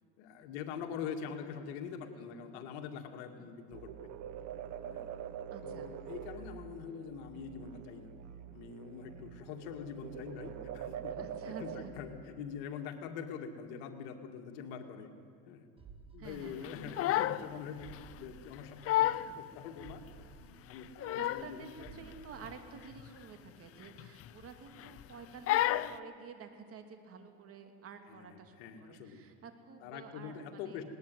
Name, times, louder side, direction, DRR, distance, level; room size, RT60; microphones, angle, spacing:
voice 1, 0.2-4.1 4.8-5.1 5.6-8.1 8.5-15.1 15.5-15.7 16.1-17.9 18.1-21.9 28.1-28.3 28.6-29.2 29.8-30.8, left 7 dB, 85° left, 5 dB, 2.3 m, -44 dB
sound 1, 3.7-11.8, right 9 dB, 60° right, 1.5 m, -45 dB
voice 2, 5.5-5.9 11.2-12.0 16.2-16.8 21.0-30.8, right 6 dB, 40° right, 6 dB, 2.8 m, -50 dB
sound 2, 15.8-17.1 17.4-17.5 17.8-19.1 19.4-19.5 19.8-21.5 21.8-23.1 23.4-23.5, right 5 dB, 15° right, 2.1 m, -56 dB
Crying sobbing, 16.6-17.5 17.8-18.0 18.5-18.6 18.9-19.3 19.8-19.9 20.7-21.5 21.8-22.1 22.4-22.6 22.9-23.1 23.9-24.5 24.8-25.1 25.5-26.0, left 14 dB, 40° left, 0.7 m, -31 dB
20.0 x 19.0 x 9.3 m, 2.3 s
cardioid pair, 125°, 34 cm